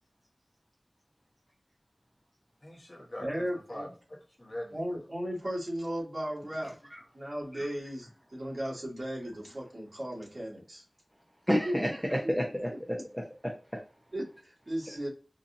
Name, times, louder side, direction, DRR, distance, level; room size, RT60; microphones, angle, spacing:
voice 1, 2.6-4.9, left 1 dB, 40° left, -1 dB, 1.1 m, -43 dB
voice 2, 3.2-3.9 4.7-6.7 7.1-10.8 11.5-12.3 13.0-13.1 14.1-15.1, equal, 55° right, -5 dB, 1.9 m, -36 dB
voice 3, 11.5-13.8, equal, ahead, -1 dB, 0.7 m, -31 dB
4.0 x 2.4 x 2.6 m, 0.36 s
wide cardioid pair, 55°, 0 cm